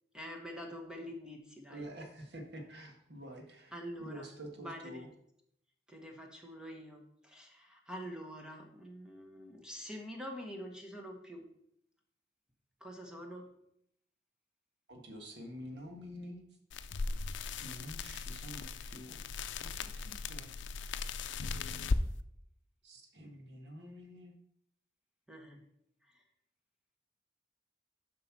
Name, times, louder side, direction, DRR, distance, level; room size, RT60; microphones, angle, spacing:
voice 1, 0.1-1.9 3.7-4.3 4.6-5.0 5.9-11.5 12.8-13.5 25.3-25.6 26.0-26.2, equal, 5° right, 1 dB, 1.2 m, -46 dB
voice 2, 1.7-3.7 4.0-5.1 14.9-16.4 17.6-19.2 19.6-20.5 22.8-24.3, equal, 65° right, 3 dB, 1.7 m, -48 dB
sound 1, 16.7-22.0, left 4 dB, 85° left, 0.5 m, -38 dB
7.5 x 5.7 x 6.0 m, 0.75 s
head